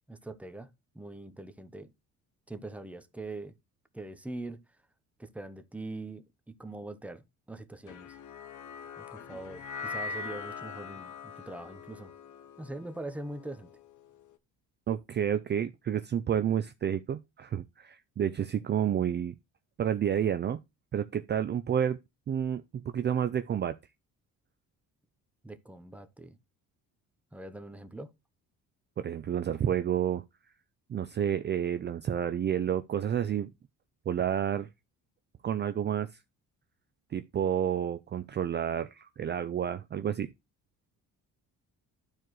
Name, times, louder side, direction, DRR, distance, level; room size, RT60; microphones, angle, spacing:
voice 1, 0.1-0.7 0.9-1.9 2.5-3.5 3.9-4.6 5.2-8.2 9.0-12.1 12.6-13.7 25.4-26.4 27.3-28.1, right 2 dB, 5° right, 0.8 m, -42 dB
sound 1, 7.9-14.2, left 5 dB, 65° left, 0.9 m, -42 dB
voice 2, 14.9-19.3 19.8-20.6 20.9-22.0 22.3-23.8 29.0-30.2 30.9-33.5 34.1-34.7 35.4-36.1 37.1-40.3, right 9 dB, 35° right, 0.4 m, -30 dB
12.0 x 4.7 x 3.1 m
cardioid pair, 120°, 33 cm